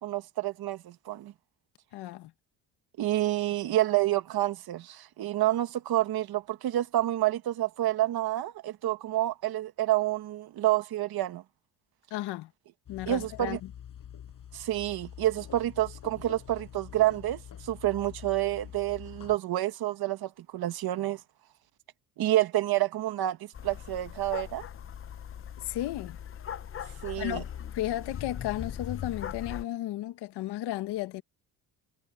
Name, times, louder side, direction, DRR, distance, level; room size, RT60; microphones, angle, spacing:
voice 1, 0.0-1.3 3.0-11.4 13.1-13.6 14.5-21.2 22.2-24.6 27.0-27.4, right 14 dB, 65° right, 1.8 m, -28 dB
voice 2, 1.9-2.3 12.1-12.5 12.9-13.7 25.6-26.2 27.2-27.5 27.7-31.2, left 14 dB, 80° left, 1.5 m, -34 dB
sound 1, 12.9-19.4, left 9 dB, 55° left, 7.5 m, -46 dB
sound 2, 23.5-29.6, left 9 dB, 35° left, 0.7 m, -39 dB
cardioid pair, 120°, 40 cm